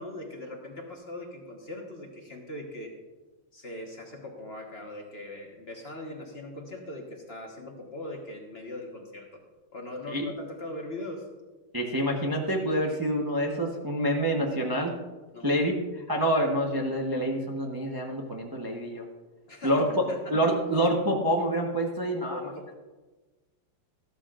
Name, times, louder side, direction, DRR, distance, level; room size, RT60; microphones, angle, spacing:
voice 1, 0.0-2.9 3.5-9.3 9.7-11.3 15.3-15.6 19.5-20.5 22.3-22.7, left 1 dB, 35° left, 1 dB, 1.1 m, -40 dB
voice 2, 11.7-14.9 15.4-19.0 19.6-22.4, equal, 30° right, -1 dB, 0.4 m, -27 dB
13.5 x 13.0 x 2.5 m, 1.2 s
omnidirectional pair, 2.3 m